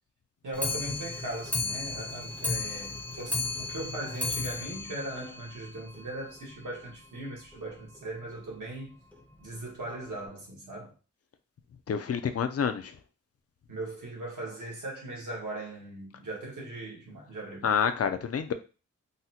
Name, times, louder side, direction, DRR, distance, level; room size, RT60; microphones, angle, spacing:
voice 1, 0.4-8.9 9.4-10.9 13.7-17.7, right 1 dB, 85° right, 1.3 m, -39 dB
Clock, 0.5-6.0 6.4-6.5 6.7-6.8 7.1-7.2 7.5-7.6 8.3-8.4 9.1-9.2 9.9-10.0, left 3 dB, 5° left, 0.5 m, -34 dB
voice 2, 11.9-12.9 17.6-18.5, left 7 dB, 55° left, 0.4 m, -28 dB
3.9 x 2.1 x 2.8 m
wide cardioid pair, 100°, 30 cm